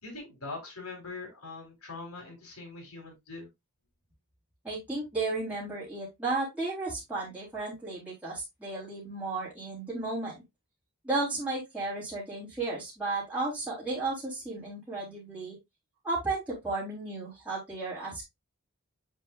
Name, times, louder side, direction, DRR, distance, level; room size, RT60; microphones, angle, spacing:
voice 1, 0.0-3.5, left 3 dB, 80° left, 1 dB, 4.0 m, -42 dB
voice 2, 4.6-10.3 11.0-15.6 16.0-18.2, right 3 dB, 5° right, -8 dB, 3.6 m, -34 dB
7.7 x 5.5 x 2.5 m, 0.19 s
head